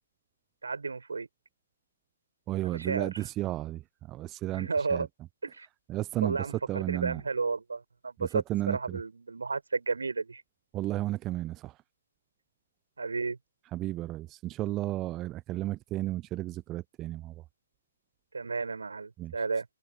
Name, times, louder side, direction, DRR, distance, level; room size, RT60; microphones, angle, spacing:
voice 1, 0.6-1.3 2.6-3.3 4.5-5.1 5.4-5.7 6.2-10.4 13.0-13.4 18.3-19.7, right 4 dB, 65° right, 7.8 m, -33 dB
voice 2, 2.5-3.8 4.1-5.1 5.9-7.2 8.2-9.0 10.7-11.7 13.7-17.3 19.2-19.3, right 16 dB, 20° right, 0.5 m, -33 dB
figure-of-eight pair, 130°, 0 cm